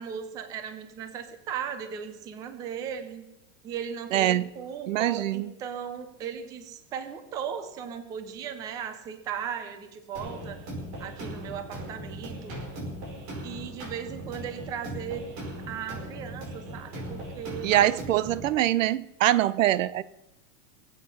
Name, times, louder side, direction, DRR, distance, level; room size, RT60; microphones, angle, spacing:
voice 1, 0.0-3.3 3.6-10.6 11.0-12.6 13.4-15.3 15.7-18.1, right 8 dB, 10° right, 0.4 m, -37 dB
voice 2, 4.1-4.5 4.9-5.5 17.6-20.0, right 13 dB, 90° right, 0.8 m, -24 dB
sound 1, 10.1-18.5, right 1 dB, 55° right, 4.9 m, -39 dB
21.5 x 8.5 x 5.5 m
supercardioid pair, 175°, 37 cm